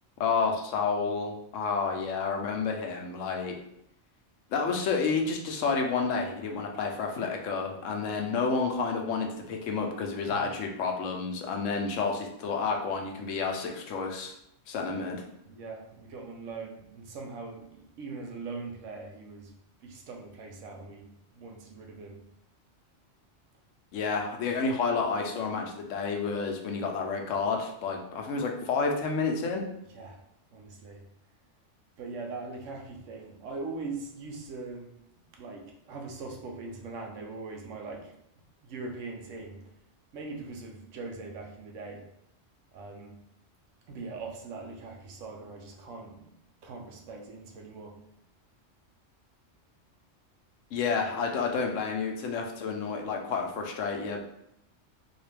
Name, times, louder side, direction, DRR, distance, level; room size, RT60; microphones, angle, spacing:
voice 1, 0.2-3.6 4.5-14.3 14.7-15.2 23.9-29.6 50.7-54.3, left 4 dB, 85° left, 2 dB, 1.0 m, -30 dB
voice 2, 15.5-19.5 19.8-22.2 29.9-30.2 30.5-31.0 32.0-35.0 35.4-38.1 38.6-39.7 40.1-42.1 42.7-43.2 43.9-46.3 46.6-48.0, right 3 dB, 85° right, 2 dB, 1.1 m, -41 dB
3.9 x 2.3 x 3.3 m, 0.79 s
omnidirectional pair, 1.3 m